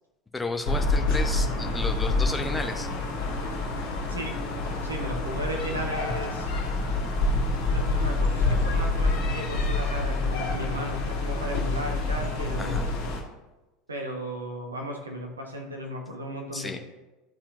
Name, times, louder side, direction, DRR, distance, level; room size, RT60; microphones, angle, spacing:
voice 1, 0.3-2.9 12.6-12.9 16.5-16.8, left 2 dB, 10° left, 4 dB, 0.8 m, -33 dB
sound 1, 0.6-13.2, left 2 dB, 60° left, 1.6 m, -27 dB
voice 2, 4.8-6.5 7.7-13.0 13.9-16.8, right 1 dB, 80° right, 3 dB, 1.0 m, -35 dB
11.5 x 4.3 x 2.6 m, 1.1 s
figure-of-eight pair, 75°, 0 cm